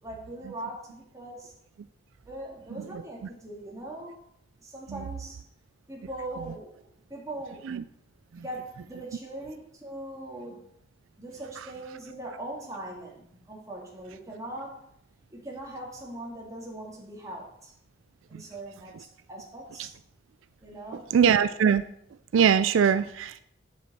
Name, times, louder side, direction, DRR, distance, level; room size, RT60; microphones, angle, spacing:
voice 1, 0.0-1.5 2.2-4.2 4.6-5.5 5.9-7.7 8.4-10.7 11.2-14.8 15.3-17.7 18.3-19.9 20.6-21.2, right 1 dB, 15° right, -2 dB, 2.1 m, -41 dB
voice 2, 21.1-21.8 22.3-23.4, right 7 dB, 80° right, 14 dB, 0.4 m, -22 dB
7.8 x 7.2 x 4.2 m, 0.72 s
head